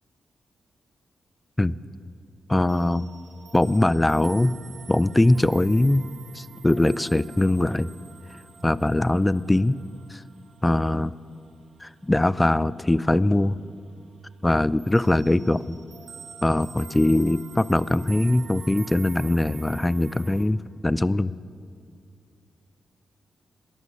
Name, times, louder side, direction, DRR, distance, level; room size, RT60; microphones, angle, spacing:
voice 1, 2.5-3.1 3.5-4.6 4.9-6.1 6.3-7.9 8.6-9.8 10.1-10.2 10.6-11.1 11.8-13.6 14.4-15.8 16.4-21.3, left 1 dB, 20° left, 19 dB, 0.4 m, -21 dB
sound 1, 2.7-13.1 13.3-13.7 14.0-20.5, right 6 dB, 70° right, 1.2 m, -47 dB
14.0 x 11.0 x 6.4 m, 2.4 s
supercardioid pair, 50°, 0 cm